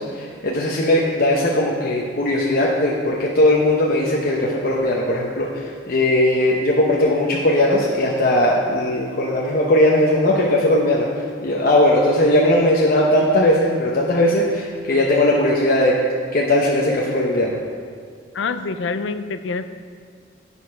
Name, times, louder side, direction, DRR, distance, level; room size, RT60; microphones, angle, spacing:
voice 1, 0.0-16.0 16.3-17.6, left 1 dB, 50° left, -3 dB, 0.9 m, -18 dB
voice 2, 18.3-19.7, left 4 dB, 75° left, 11 dB, 0.5 m, -26 dB
8.4 x 7.1 x 5.7 m, 2.1 s
head